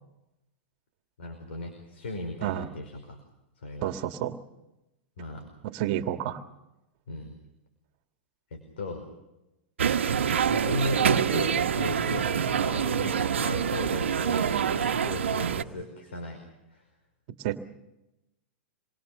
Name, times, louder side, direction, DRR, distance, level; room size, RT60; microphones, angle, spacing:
voice 1, 1.2-3.2 3.6-3.9 5.2-5.4 7.1-7.3 8.5-9.0 10.4-16.4 16.7-16.8, left 2 dB, 80° left, 4 dB, 5.1 m, -36 dB
voice 2, 3.8-4.4 5.6-6.4 17.3-17.6, right 12 dB, 55° right, 8 dB, 1.8 m, -30 dB
sound 1, 9.8-15.6, right 7 dB, 85° right, 1.4 m, -26 dB
27.5 x 22.0 x 6.7 m, 0.95 s
hypercardioid pair, 120°, 6 cm